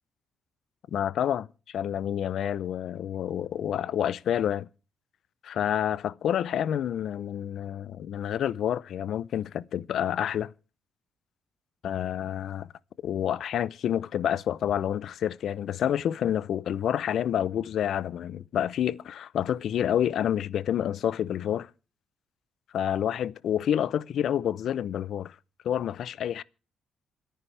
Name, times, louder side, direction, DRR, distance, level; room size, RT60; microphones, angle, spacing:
voice 1, 0.9-4.7 5.4-10.5 11.8-12.7 13.0-21.7 22.7-25.3 25.6-26.4, left 10 dB, 70° left, 0.6 m, -28 dB
27.5 x 10.5 x 3.3 m
cardioid pair, 90°, 0 cm